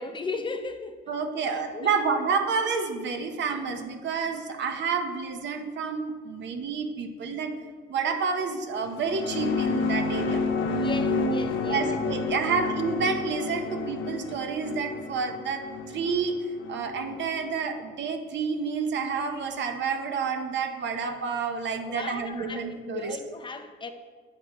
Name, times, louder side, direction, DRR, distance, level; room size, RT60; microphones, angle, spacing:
voice 1, 0.0-1.0 1.4-2.0 10.6-12.8 21.9-23.9, left 4 dB, 25° left, 7 dB, 0.6 m, -37 dB
voice 2, 1.1-7.5 7.9-10.4 11.6-16.4 16.7-23.2, right 5 dB, 65° right, 6 dB, 0.8 m, -29 dB
sound 1, 8.9-17.5, left 3 dB, 85° left, 0.6 m, -30 dB
8.4 x 4.4 x 3.7 m, 1.5 s
cardioid pair, 90°, 20 cm